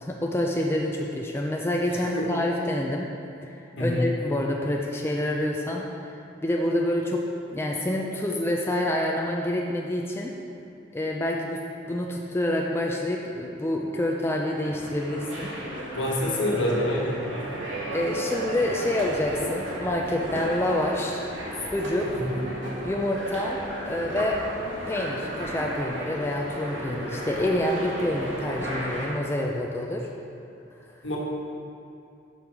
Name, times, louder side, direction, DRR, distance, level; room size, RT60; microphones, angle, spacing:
voice 1, 0.0-3.1 3.4-3.5 3.8-5.8 6.4-7.2 7.5-10.3 10.9-11.6 11.9-15.5 17.9-21.2 21.6-22.1 22.8-23.6 23.9-24.4 24.9-30.1, left 1 dB, 15° left, -1 dB, 0.4 m, -27 dB
voice 2, 3.8-4.1 16.0-17.2 22.1-22.4 31.0-31.2, left 1 dB, 75° left, -3 dB, 1.3 m, -26 dB
sound 1, 14.5-29.1, right 1 dB, 80° right, 1.6 m, -34 dB
5.4 x 4.8 x 5.9 m, 2.6 s
head